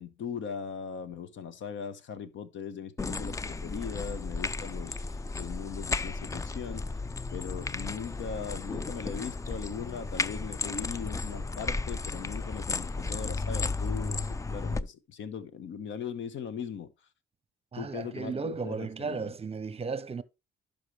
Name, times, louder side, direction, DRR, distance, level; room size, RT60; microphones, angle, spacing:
voice 1, 0.0-5.0 5.3-6.9 7.3-16.9 17.8-19.3, left 7 dB, 70° left, 1.1 m, -39 dB
sound 1, 3.0-14.8, left 3 dB, 15° left, 0.4 m, -34 dB
voice 2, 17.7-20.2, right 5 dB, 30° right, 0.7 m, -35 dB
11.5 x 5.3 x 3.2 m
cardioid pair, 90°, 20 cm